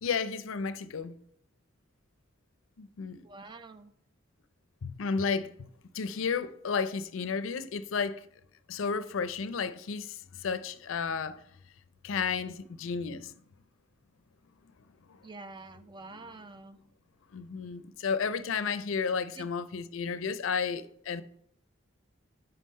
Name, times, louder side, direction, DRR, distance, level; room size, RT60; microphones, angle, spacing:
voice 1, 0.0-1.2 2.8-3.3 4.8-5.5 5.9-8.2 8.7-11.4 12.0-13.3 17.3-21.2, left 5 dB, 85° left, 0.4 m, -32 dB
voice 2, 3.2-3.9 15.2-16.8 19.4-19.5, right 3 dB, 25° right, 0.4 m, -47 dB
5.6 x 5.5 x 4.2 m
head